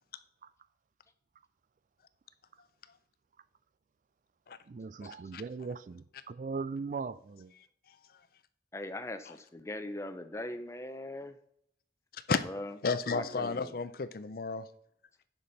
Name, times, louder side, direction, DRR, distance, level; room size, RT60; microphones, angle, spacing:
voice 1, 4.7-7.5, right 4 dB, 45° right, 0.3 m, -39 dB
voice 2, 8.7-11.4 12.4-12.8 13.1-13.8, left 1 dB, 15° left, 0.6 m, -40 dB
voice 3, 12.8-14.6, left 4 dB, 55° left, 0.5 m, -32 dB
9.8 x 6.0 x 4.1 m
head